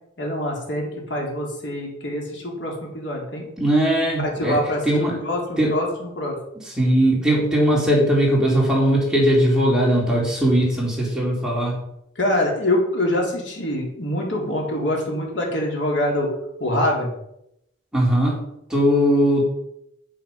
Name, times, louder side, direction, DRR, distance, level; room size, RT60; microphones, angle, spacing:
voice 1, 0.2-3.5 4.4-6.3 12.2-16.3 16.6-17.1, left 1 dB, 65° left, -1 dB, 3.8 m, -25 dB
voice 2, 3.6-4.6 4.8-5.2 5.6-5.7 6.8-11.8 17.9-18.4 18.7-19.5, equal, 5° right, -4 dB, 3.9 m, -19 dB
10.0 x 9.6 x 5.8 m, 0.78 s
head